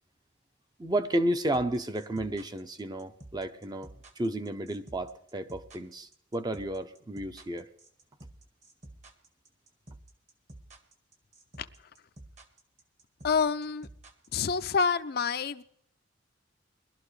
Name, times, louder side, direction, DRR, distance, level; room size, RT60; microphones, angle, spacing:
voice 1, 0.8-7.7, right 1 dB, 20° right, 9 dB, 0.6 m, -32 dB
sound 1, 1.5-14.7, right 1 dB, 35° right, 1.2 m, -50 dB
voice 2, 13.2-13.9 14.3-15.6, left 5 dB, 50° left, 11 dB, 0.5 m, -27 dB
20.5 x 12.0 x 3.2 m, 0.66 s
head